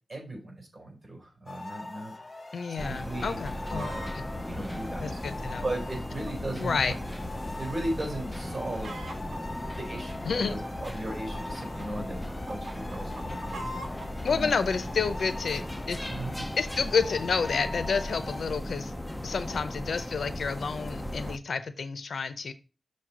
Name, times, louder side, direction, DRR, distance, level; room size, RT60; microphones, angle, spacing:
voice 1, 0.1-2.1 2.8-3.4 3.7-4.2 4.4-5.2 5.6-6.9 7.6-9.0 9.6-13.6 13.9-14.5 16.1-16.5, right 1 dB, 35° right, 0 dB, 4.2 m, -37 dB
sound 1, 1.5-18.4, left 2 dB, 25° left, 1.1 m, -43 dB
voice 2, 2.5-4.2 5.0-5.6 6.6-7.0 10.2-10.5 14.2-16.1 16.6-18.9 19.2-22.5, left 5 dB, 75° left, 11 dB, 0.7 m, -30 dB
sound 2, 2.8-21.4, left 1 dB, 10° left, 0.5 m, -37 dB
Chicken rooster, 3.3-4.1 4.7-7.0 7.3-7.4 8.0-8.2 8.5-9.4 10.1-11.9 12.3-14.1 14.8-14.9, right 1 dB, 90° right, 1.1 m, -43 dB
6.5 x 4.3 x 6.1 m, 0.33 s
wide cardioid pair, 100°, 0 cm